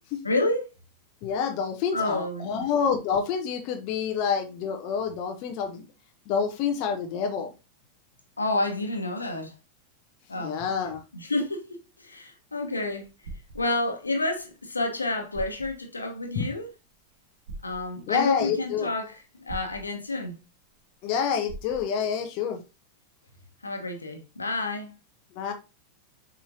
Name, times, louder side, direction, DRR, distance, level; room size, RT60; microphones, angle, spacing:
voice 1, 0.2-0.7 1.9-2.7 8.4-9.5 10.3-10.6 11.1-13.1 13.5-16.7 17.6-20.4 23.6-24.9, left 2 dB, 80° left, 1.5 m, -29 dB
voice 2, 1.2-5.8 6.3-7.5 10.4-11.0 16.3-16.4 18.1-18.9 21.0-22.6 25.3-25.5, left 7 dB, 45° left, 1.1 m, -28 dB
sound 1, 12.9-13.6 14.9-15.0 15.3-15.7 17.5-17.8 19.5-19.8 21.5-21.9, right 3 dB, 55° right, 1.8 m, -40 dB
7.3 x 5.5 x 2.8 m
figure-of-eight pair, 90°, 0 cm